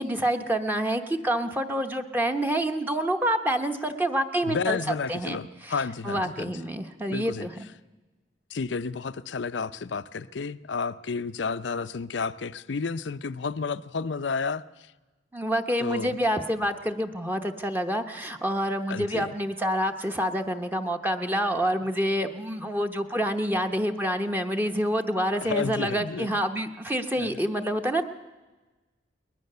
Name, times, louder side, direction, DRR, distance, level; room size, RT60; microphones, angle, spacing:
voice 1, 0.0-4.8 5.1-5.4 5.6-5.7 6.0-7.7 15.3-28.0, equal, 10° right, 5 dB, 0.9 m, -27 dB
voice 2, 4.4-6.5 7.1-7.5 8.5-14.6 15.8-16.2 18.9-19.3 25.4-26.4 27.2-27.4, left 5 dB, 80° left, 15 dB, 0.6 m, -31 dB
21.0 x 20.0 x 6.8 m, 1.2 s
head